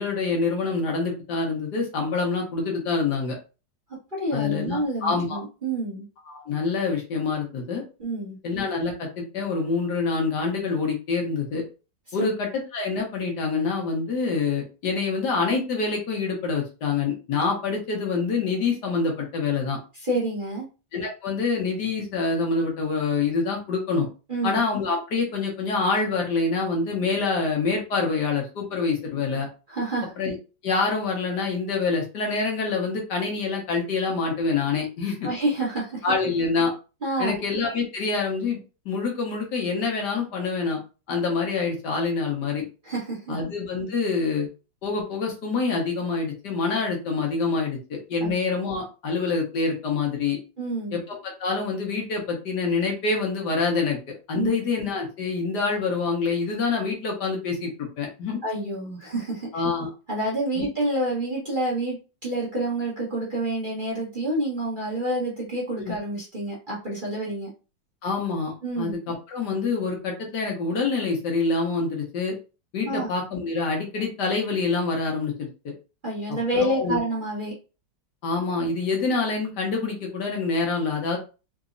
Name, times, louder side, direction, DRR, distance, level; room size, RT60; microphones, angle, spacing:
voice 1, 0.0-3.4 4.3-5.4 6.3-7.8 8.4-11.6 12.1-19.8 20.9-24.1 24.4-29.5 30.2-30.3 30.6-35.1 36.0-36.7 37.2-38.6 38.8-40.8 41.1-42.7 43.3-44.5 44.8-50.4 50.9-54.0 54.3-58.4 59.5-59.9 60.6-60.7 65.8-65.9 68.0-72.3 72.7-75.7 76.5-77.0 78.2-81.2, left 4 dB, 70° left, 0 dB, 1.5 m, -26 dB
voice 2, 4.2-6.0 8.0-8.4 12.2-12.3 19.9-20.7 24.3-24.6 29.7-30.1 35.2-36.0 37.0-37.4 42.8-43.4 48.2-48.3 50.6-51.0 54.3-54.5 58.4-59.6 60.1-62.0 62.2-67.5 68.6-69.0 72.8-73.1 76.0-77.5, right 1 dB, 30° right, -6 dB, 1.1 m, -28 dB
3.9 x 2.7 x 2.5 m, 0.32 s
omnidirectional pair, 2.0 m